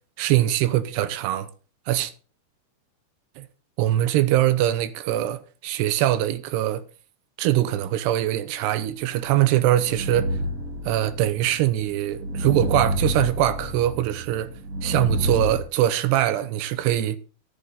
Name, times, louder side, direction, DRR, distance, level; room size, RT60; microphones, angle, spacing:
voice 1, 0.2-1.5 1.9-2.1 3.4-3.5 3.8-6.8 7.4-10.3 10.9-14.5 14.8-17.2, right 13 dB, 90° right, 3.0 m, -22 dB
sound 1, 9.1-15.6, right 1 dB, 35° right, 1.4 m, -29 dB
14.0 x 7.8 x 4.1 m
omnidirectional pair, 4.7 m